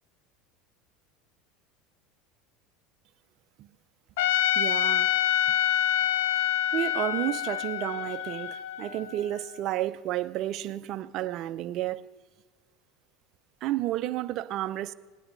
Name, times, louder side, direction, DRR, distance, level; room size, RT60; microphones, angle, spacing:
Trumpet, 4.2-9.4, left 11 dB, 80° left, 0.7 m, -27 dB
voice 1, 4.5-5.1 6.7-12.0 13.6-14.9, right 14 dB, 55° right, 0.5 m, -31 dB
19.5 x 10.0 x 4.0 m
supercardioid pair, 100°, 0 cm